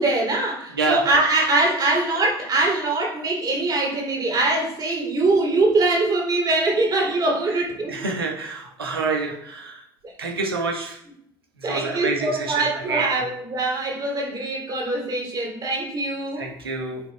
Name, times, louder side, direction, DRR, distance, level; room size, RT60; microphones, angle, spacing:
voice 1, 0.0-8.0 11.6-16.5, right 2 dB, 35° right, -1 dB, 3.2 m, -23 dB
voice 2, 7.9-9.8 10.2-11.0 11.6-13.2 16.4-17.0, right 3 dB, 85° right, 0 dB, 1.4 m, -27 dB
14.0 x 5.9 x 2.4 m, 0.71 s
figure-of-eight pair, 60°, 12 cm